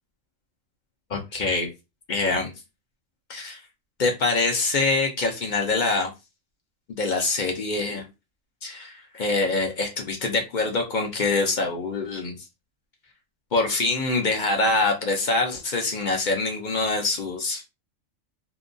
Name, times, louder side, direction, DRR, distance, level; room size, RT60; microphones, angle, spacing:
voice 1, 1.1-1.7 2.1-2.5 3.3-3.6 4.0-6.1 6.9-8.0 8.6-12.5 13.5-17.7, left 3 dB, 60° left, 2 dB, 0.5 m, -25 dB
2.7 x 2.2 x 2.5 m, 0.25 s
omnidirectional pair, 1.4 m